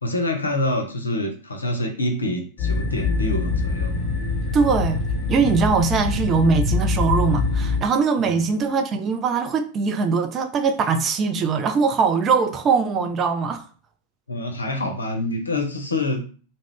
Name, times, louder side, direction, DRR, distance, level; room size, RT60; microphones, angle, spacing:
voice 1, 0.0-4.0 8.2-8.5 14.3-16.2, left 1 dB, 80° left, 0.5 m, -26 dB
sound 1, 2.6-7.8, left 3 dB, 35° left, 1.1 m, -24 dB
voice 2, 4.5-5.0 5.3-13.6, right 5 dB, 30° right, 0.3 m, -21 dB
2.3 x 2.0 x 3.5 m
figure-of-eight pair, 90°, 0 cm